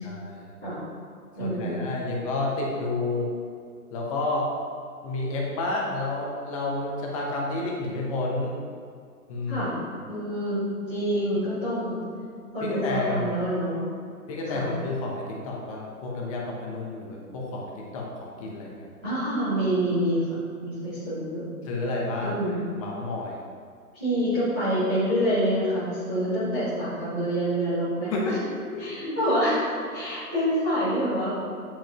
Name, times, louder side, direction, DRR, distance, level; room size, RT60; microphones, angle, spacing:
voice 1, 0.0-0.5 1.4-3.3 3.9-4.5 5.0-8.6 9.3-9.7 12.6-13.5 14.3-18.9 21.7-22.4 22.8-23.4 28.1-29.2, left 2 dB, 20° left, -2 dB, 0.9 m, -30 dB
voice 2, 1.4-1.8 9.5-9.7 10.1-12.0 12.5-14.0 14.5-14.7 19.0-21.5 22.2-22.6 23.9-28.4 28.8-31.4, equal, 5° right, -19 dB, 0.4 m, -27 dB
8.6 x 5.3 x 2.9 m, 2.3 s
hypercardioid pair, 145°, 46 cm